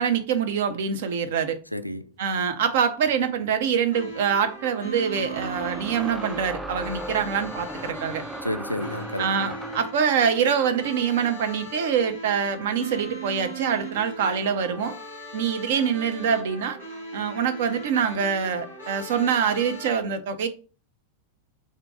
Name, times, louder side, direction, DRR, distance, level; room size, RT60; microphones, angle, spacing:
voice 1, 0.0-1.6 2.2-8.2 9.2-14.9 15.3-16.8 17.1-20.5, right 7 dB, 55° right, 0.6 m, -25 dB
voice 2, 1.7-2.0 8.4-9.5, left 1 dB, 90° left, 0.3 m, -31 dB
sound 1, 3.2-3.3 5.2-10.0, right 1 dB, 5° right, 0.3 m, -37 dB
sound 2, 3.9-19.9, right 2 dB, 90° right, 1.5 m, -39 dB
3.6 x 2.7 x 4.7 m
figure-of-eight pair, 90°, 0 cm